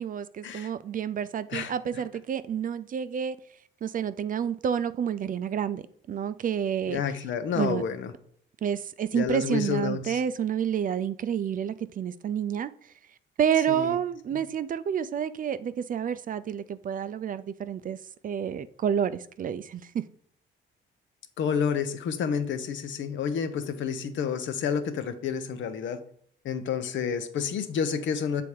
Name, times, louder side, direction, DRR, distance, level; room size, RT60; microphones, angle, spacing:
voice 1, 0.0-3.4 3.8-7.0 7.6-7.8 8.6-12.7 13.4-18.0 18.2-20.0, right 8 dB, 45° right, 0.4 m, -29 dB
voice 2, 6.9-8.1 9.1-10.2 13.7-14.0 21.4-26.0 26.4-28.4, left 7 dB, 70° left, 0.8 m, -29 dB
7.0 x 3.5 x 4.6 m
cardioid pair, 90°, 20 cm